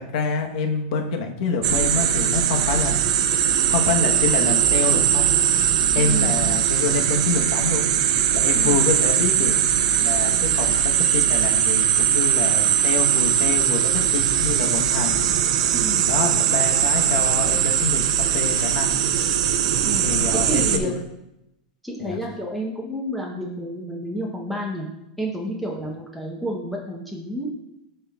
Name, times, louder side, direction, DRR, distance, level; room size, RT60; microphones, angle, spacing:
voice 1, 0.0-3.0 3.6-5.3 5.9-7.9 8.3-9.6 10.0-15.2 16.0-19.0 19.9-20.9 22.0-22.2, left 4 dB, 65° left, 3 dB, 1.0 m, -26 dB
sound 1, 1.6-20.8, right 9 dB, 60° right, 0.6 m, -20 dB
voice 2, 6.0-6.5 8.5-8.8 15.7-16.1 19.9-20.0 20.3-20.9 21.8-24.9 25.2-27.5, equal, ahead, -3 dB, 0.8 m, -30 dB
11.0 x 4.4 x 2.3 m, 0.88 s
supercardioid pair, 160°, 4 cm